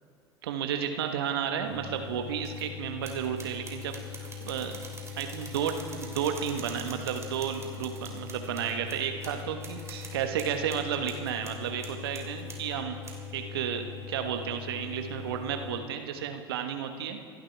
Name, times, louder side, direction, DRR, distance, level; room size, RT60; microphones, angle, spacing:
voice 1, 0.4-4.9 5.2-13.0 13.3-17.2, right 8 dB, 70° right, 6 dB, 1.3 m, -32 dB
sound 1, 1.6-15.8, left 8 dB, 55° left, 2.6 m, -42 dB
sound 2, 2.5-2.6 3.0-12.7 13.0-13.3, right 4 dB, 20° right, 3.1 m, -46 dB
27.0 x 11.5 x 3.5 m, 2.3 s
figure-of-eight pair, 75°, 13 cm